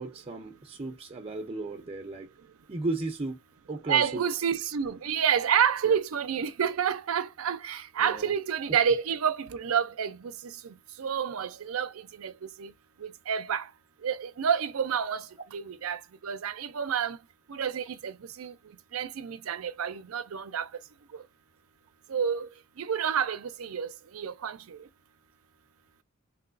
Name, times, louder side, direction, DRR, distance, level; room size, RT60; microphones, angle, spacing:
voice 1, 0.0-2.3 2.7-3.4 3.7-4.2 5.8-6.0 8.0-8.3 8.7-8.8, right 2 dB, 30° right, 0.5 m, -35 dB
voice 2, 3.9-10.5 11.0-11.9 12.2-12.7 13.0-13.7 14.0-15.3 15.5-17.2 17.5-18.5 18.9-20.7 22.1-22.5 22.8-24.8, right 7 dB, 85° right, 0.5 m, -29 dB
3.1 x 2.9 x 2.5 m
head